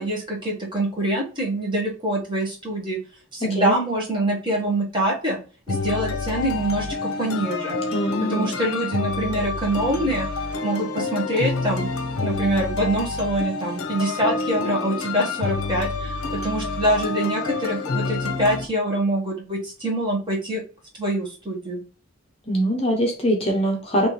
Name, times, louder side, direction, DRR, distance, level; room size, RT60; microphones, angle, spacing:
voice 1, 0.0-3.0 3.3-5.4 5.7-7.8 8.3-10.3 10.6-11.9 12.2-20.6 21.0-21.8, right 1 dB, 20° right, -3 dB, 1.3 m, -25 dB
voice 2, 3.4-3.7 7.9-8.5 22.5-24.1, equal, 25° left, 1 dB, 0.9 m, -23 dB
sound 1, 5.7-18.7, left 3 dB, 75° left, 0.7 m, -28 dB
4.3 x 3.0 x 3.2 m, 0.38 s
head